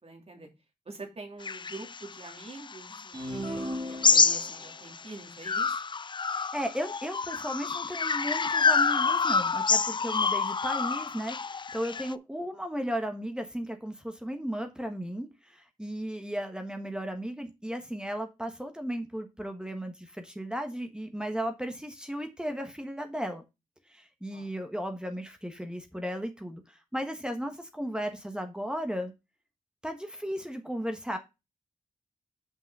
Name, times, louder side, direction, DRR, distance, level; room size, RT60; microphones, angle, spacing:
voice 1, 0.0-0.5 0.9-5.8 24.3-24.6, right 2 dB, 45° right, 2.7 m, -45 dB
sound 1, 1.4-5.0 5.4-12.1, left 5 dB, 35° left, 0.4 m, -27 dB
sound 2, 3.1-4.7, equal, 30° right, 1.8 m, -36 dB
voice 2, 6.5-23.4 23.9-29.1 29.8-31.2, equal, 5° right, 1.3 m, -35 dB
6.0 x 5.5 x 5.4 m
cardioid pair, 55°, 14 cm